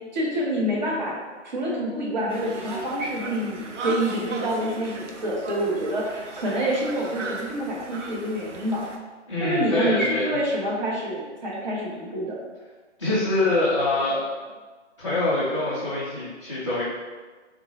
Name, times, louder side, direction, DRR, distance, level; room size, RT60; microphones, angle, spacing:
voice 1, 0.1-1.2 1.4-8.8 9.4-12.4, equal, 40° right, -5 dB, 0.8 m, -27 dB
Conversation, 2.3-9.0, right 3 dB, 75° right, 0.5 m, -37 dB
voice 2, 9.3-10.4 13.0-14.3 15.0-16.8, left 2 dB, 25° left, -11 dB, 0.4 m, -24 dB
3.7 x 2.0 x 2.7 m, 1.3 s
figure-of-eight pair, 140°, 36 cm